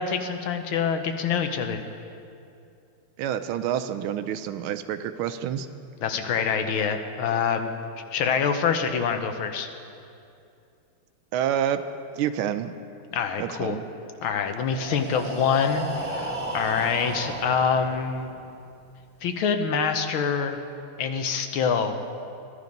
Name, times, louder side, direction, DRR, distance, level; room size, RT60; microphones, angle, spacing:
voice 1, 0.0-1.8 6.0-7.7 8.1-9.7 13.1-13.8 14.2-18.3 19.2-20.6 21.0-22.0, left 6 dB, 75° left, 6 dB, 1.6 m, -25 dB
voice 2, 3.2-5.7 11.3-11.8 12.2-12.7 13.4-13.8, right 10 dB, 80° right, 10 dB, 1.4 m, -28 dB
Breathing, 14.6-18.5, right 2 dB, 30° right, 1.3 m, -34 dB
15.5 x 11.5 x 5.3 m, 2.6 s
omnidirectional pair, 2.4 m